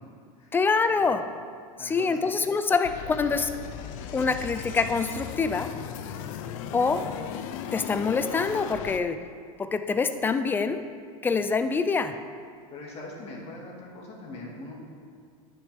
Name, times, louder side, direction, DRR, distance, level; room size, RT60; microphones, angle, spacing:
voice 1, 0.5-1.3 1.8-3.5 4.1-5.7 6.7-7.1 7.7-9.2 9.6-10.8 11.2-12.2, left 4 dB, 10° left, 9 dB, 0.4 m, -25 dB
voice 2, 1.8-2.4 12.7-14.7, left 2 dB, 35° left, -2 dB, 2.0 m, -42 dB
sound 1, 2.8-9.0, left 9 dB, 65° left, 0.5 m, -37 dB
11.0 x 6.4 x 3.4 m, 2.1 s
supercardioid pair, 130°, 18 cm